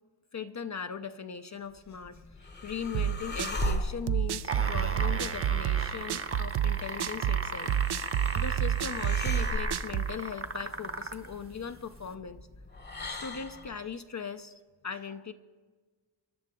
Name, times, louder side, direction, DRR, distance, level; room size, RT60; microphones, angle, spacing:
voice 1, 0.3-7.8 8.4-12.4 13.2-15.3, left 6 dB, 35° left, 8 dB, 0.5 m, -39 dB
sound 1, 1.8-13.9, left 3 dB, 20° left, 0.9 m, -40 dB
sound 2, 2.9-10.2, right 10 dB, 55° right, 0.5 m, -29 dB
sound 3, 4.4-11.3 12.1-12.2, right 3 dB, 25° right, 1.0 m, -36 dB
27.5 x 11.0 x 3.7 m, 1.4 s
wide cardioid pair, 105°, 50 cm